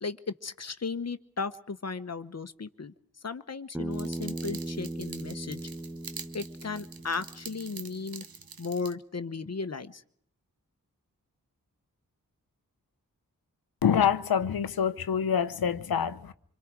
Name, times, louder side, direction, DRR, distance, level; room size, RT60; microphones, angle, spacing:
voice 1, 0.0-5.6 6.3-8.2 8.6-10.0, left 4 dB, 45° left, 1.1 m, -36 dB
Bass guitar, 3.7-8.1, right 1 dB, 5° right, 0.8 m, -38 dB
sound 1, 3.9-8.9, right 6 dB, 75° right, 1.2 m, -46 dB
voice 2, 13.8-16.3, left 8 dB, 85° left, 0.9 m, -26 dB
26.5 x 22.5 x 4.8 m
cardioid pair, 45°, 35 cm